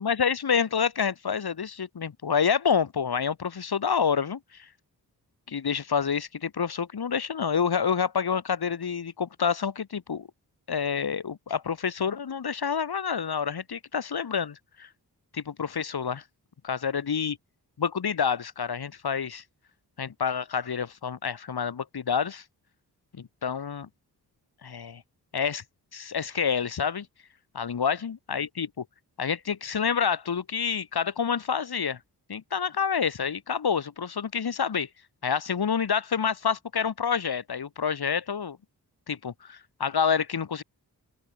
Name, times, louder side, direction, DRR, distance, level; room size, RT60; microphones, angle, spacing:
voice 1, 0.0-4.7 5.5-10.3 10.7-14.9 15.3-16.2 16.6-17.4 17.8-19.4 20.0-22.4 23.1-23.9 24.6-25.0 25.3-25.6 25.9-27.1 27.5-28.8 29.2-32.0 32.3-34.9 35.2-38.6 39.1-40.6, left 6 dB, 75° left, 4.1 m, -28 dB
open air
cardioid pair, 50°, 39 cm